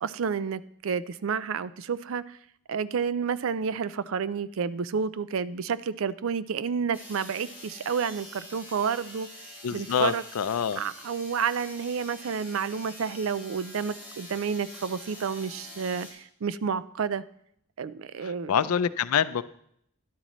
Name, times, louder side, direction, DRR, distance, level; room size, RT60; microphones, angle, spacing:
voice 1, 0.0-2.4 2.7-9.3 9.7-10.2 10.8-17.2 17.8-18.5, right 6 dB, 65° right, 16 dB, 0.4 m, -30 dB
sound 1, 6.9-16.1, left 1 dB, 10° right, 3.9 m, -46 dB
voice 2, 9.6-10.8 18.2-19.4, left 8 dB, 90° left, 16 dB, 0.4 m, -26 dB
12.5 x 11.0 x 3.1 m, 0.71 s
head